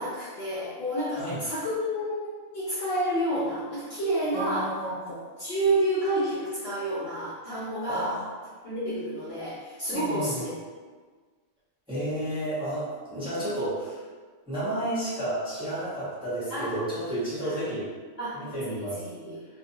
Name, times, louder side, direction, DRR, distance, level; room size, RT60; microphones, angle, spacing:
voice 1, 0.0-4.8 5.4-8.2 8.6-10.5 13.4-13.5 16.5-16.7 17.4-17.7 18.2-18.5 18.8-19.5, right 1 dB, 60° left, -9 dB, 0.8 m, -29 dB
voice 2, 4.3-5.2 7.9-8.3 9.9-10.4 11.9-14.0 14.5-17.9 18.3-19.0, right 1 dB, 5° right, -13 dB, 1.0 m, -32 dB
2.5 x 2.4 x 2.7 m, 1.5 s
omnidirectional pair, 1.3 m